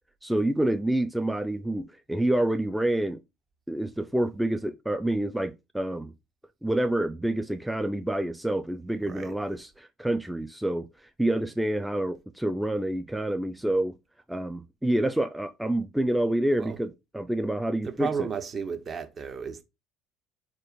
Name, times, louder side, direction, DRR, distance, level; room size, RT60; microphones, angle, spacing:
voice 1, 0.2-3.2 3.7-6.1 6.6-13.9 14.3-18.3, right 1 dB, 5° right, 0.4 m, -28 dB
voice 2, 9.0-9.3 16.6-16.8 17.8-19.6, right 6 dB, 40° right, 0.9 m, -33 dB
4.4 x 2.5 x 4.9 m
hypercardioid pair, 60°, 0 cm